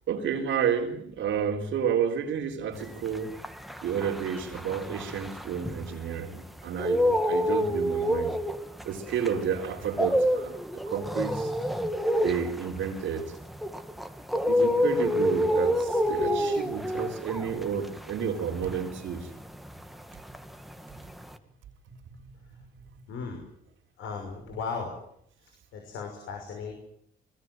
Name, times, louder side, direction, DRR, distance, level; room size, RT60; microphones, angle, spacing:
voice 1, 0.1-3.3 3.8-8.3 8.8-10.6 10.8-11.5 12.2-13.3 14.5-19.3, right 7 dB, 80° right, 4 dB, 3.9 m, -31 dB
sound 1, 3.0-6.2 6.6-20.0 20.3-21.3, equal, ahead, 2.1 m, -28 dB
voice 2, 23.1-23.4 24.0-25.0 25.4-26.8, left 5 dB, 85° left, 3 dB, 5.8 m, -37 dB
25.0 x 21.0 x 7.9 m, 0.71 s
cardioid pair, 90°, 20 cm